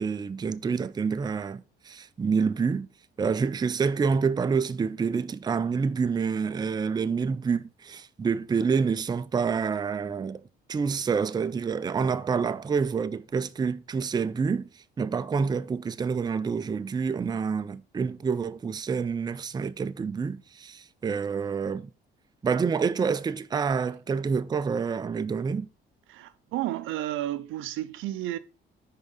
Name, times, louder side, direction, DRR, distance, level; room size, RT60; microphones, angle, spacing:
voice 1, 0.0-2.9 3.2-10.4 10.7-14.7 15.0-21.9 22.4-25.7, right 5 dB, 20° right, 0.4 m, -27 dB
voice 2, 26.1-28.4, right 14 dB, 90° right, 0.5 m, -32 dB
5.2 x 3.6 x 5.5 m
cardioid pair, 90°, 20 cm